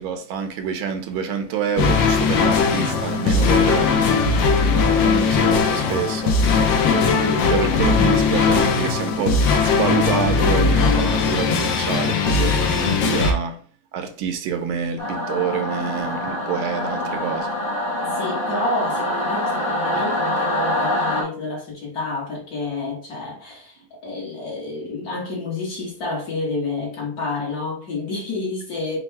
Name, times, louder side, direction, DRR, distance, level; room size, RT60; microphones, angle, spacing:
voice 1, 0.0-6.5 7.5-13.6 13.9-17.6 18.0-18.1 19.9-20.0, right 7 dB, 80° right, 1.5 m, -27 dB
sound 1, 1.8-13.3, left 5 dB, 70° left, 1.3 m, -19 dB
voice 2, 6.8-7.8 18.1-29.0, left 3 dB, 50° left, 1.8 m, -29 dB
Singing / Musical instrument, 15.0-21.2, left 1 dB, 35° left, 0.9 m, -25 dB
4.3 x 2.3 x 4.4 m
omnidirectional pair, 2.2 m